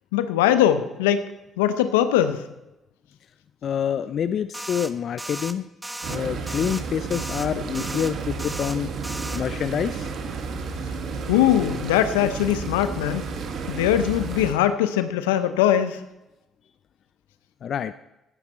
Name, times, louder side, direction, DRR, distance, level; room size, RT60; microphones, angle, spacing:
voice 1, 0.1-1.2 1.6-2.5 11.3-13.2 13.7-16.0, left 11 dB, 90° left, 12 dB, 0.8 m, -21 dB
voice 2, 3.6-5.6 6.1-8.9 9.3-10.1 17.6-17.9, left 8 dB, 60° left, 13 dB, 0.4 m, -27 dB
sound 1, 4.5-4.9 5.2-5.5 5.8-6.2 6.5-6.8 7.1-7.5 7.7-8.1 8.4-8.8 9.0-9.4, right 1 dB, 10° right, 1.1 m, -35 dB
sound 2, 6.0-14.5, right 5 dB, 65° right, 1.6 m, -32 dB
16.0 x 10.5 x 4.3 m, 0.93 s
hypercardioid pair, 50°, 0 cm